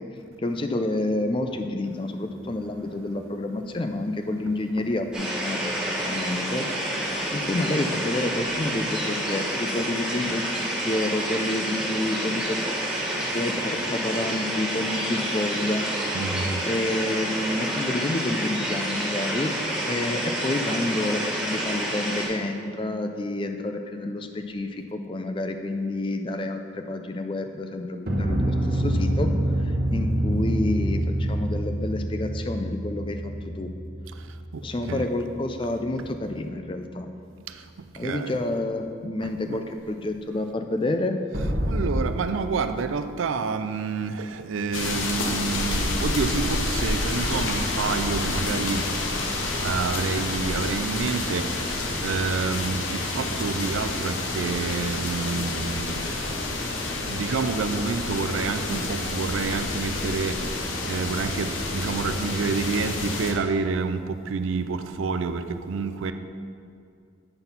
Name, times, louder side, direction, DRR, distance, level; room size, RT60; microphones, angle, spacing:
voice 1, 0.4-5.7 6.1-6.7 7.0-12.6 13.3-15.8 16.7-19.5 19.9-29.3 29.6-33.7 34.6-37.1 38.0-41.2, left 2 dB, 25° left, 6 dB, 0.4 m, -29 dB
sound 1, 5.1-22.3, right 1 dB, 5° right, 1.4 m, -29 dB
voice 2, 16.1-16.6 34.1-35.1 37.5-38.4 39.4-39.7 41.6-48.8 49.6-56.2 57.0-66.1, right 4 dB, 85° right, 10 dB, 0.4 m, -29 dB
sound 2, 28.1-36.4 41.3-42.0, right 1 dB, 50° right, 1.1 m, -27 dB
sound 3, 44.7-63.3, left 2 dB, 85° left, 0.9 m, -29 dB
9.0 x 3.9 x 5.5 m, 2.4 s
head